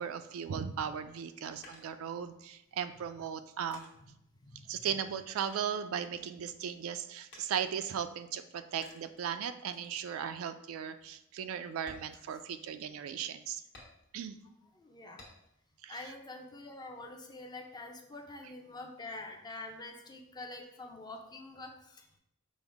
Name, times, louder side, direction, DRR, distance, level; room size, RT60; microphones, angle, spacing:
voice 1, 0.0-3.9 4.7-13.6 14.1-14.4 15.8-16.1, right 8 dB, 75° right, 10 dB, 0.3 m, -37 dB
sound 1, 1.6-2.6 3.2-5.1 5.4-6.5 7.3-8.0 8.8-9.3 9.7-10.0 10.4-10.5 11.0-11.1 11.7-13.0 13.7-14.4 15.2-15.7 16.1-17.0, left 2 dB, 55° left, 1.2 m, -57 dB
voice 2, 4.4-4.8 14.8-15.2 15.9-22.2, left 2 dB, 20° left, 3 dB, 0.5 m, -46 dB
5.2 x 2.1 x 4.6 m, 0.79 s
head